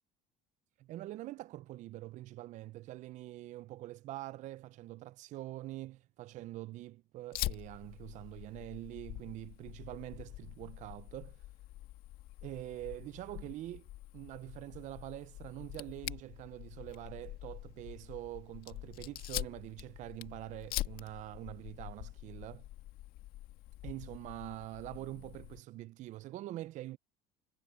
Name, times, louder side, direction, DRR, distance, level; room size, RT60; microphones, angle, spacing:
voice 1, 0.8-11.4 12.4-13.9 14.1-22.7 23.8-27.0, right 16 dB, 50° right, 0.5 m, -45 dB
Fire, 7.3-25.6, left 16 dB, 65° left, 1.8 m, -45 dB
cardioid pair, 130°, 16 cm